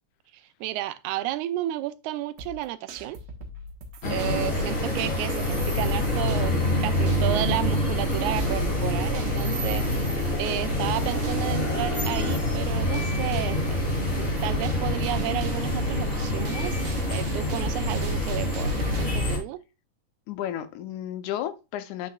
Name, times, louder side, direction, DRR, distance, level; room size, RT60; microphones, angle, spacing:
voice 1, 0.6-3.2 4.1-6.6 6.8-13.8 14.1-16.8 17.1-19.6, right 15 dB, 80° right, 1.9 m, -32 dB
sound 1, 2.4-19.1, right 1 dB, 60° right, 2.1 m, -42 dB
voice 2, 4.0-4.4 20.3-22.1, left 11 dB, 75° left, 2.1 m, -33 dB
sound 2, 4.0-19.4, left 1 dB, 20° left, 2.3 m, -26 dB
9.2 x 5.7 x 2.3 m
omnidirectional pair, 3.6 m